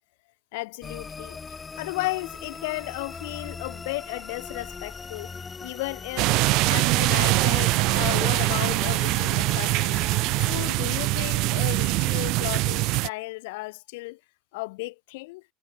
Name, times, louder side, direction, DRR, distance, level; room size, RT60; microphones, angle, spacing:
voice 1, 0.5-1.4 1.8-5.3 5.6-6.4 6.7-10.0 10.4-14.2 14.5-15.4, left 23 dB, 75° left, 1.3 m, -34 dB
sound 1, 0.8-10.6, left 5 dB, 25° left, 2.5 m, -40 dB
sound 2, 6.2-13.1, right 22 dB, 65° right, 0.4 m, -23 dB
hypercardioid pair, 85°, 0 cm